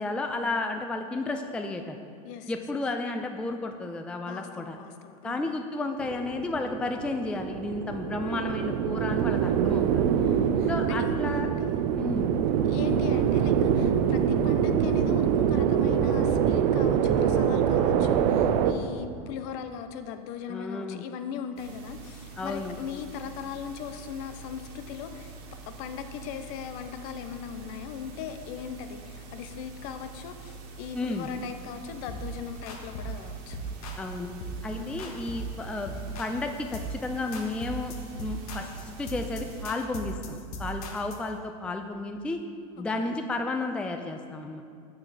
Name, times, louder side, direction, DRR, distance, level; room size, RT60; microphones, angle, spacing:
voice 1, 0.0-2.0 2.5-4.8 5.2-10.0 10.7-11.5 12.0-12.3 20.5-21.0 22.4-22.7 30.9-31.3 34.0-34.3 34.6-42.4 42.8-44.6, left 2 dB, 5° left, 5 dB, 0.3 m, -32 dB
voice 2, 4.2-5.4 10.2-11.7 12.6-25.3 25.7-33.6 34.7-35.0 42.8-43.1, left 7 dB, 60° left, 9 dB, 0.6 m, -39 dB
sound 1, 6.0-18.7, right 8 dB, 75° right, 0.5 m, -25 dB
sound 2, 21.6-39.7, right 3 dB, 55° right, 1.5 m, -45 dB
sound 3, 32.1-32.3 32.7-33.2 33.5-34.1 34.4-34.6 35.0-35.5 35.9-36.4 36.7-37.1 37.3-41.3, right 2 dB, 75° left, 1.0 m, -38 dB
6.6 x 6.2 x 4.2 m, 2.3 s
supercardioid pair, 110°, 19 cm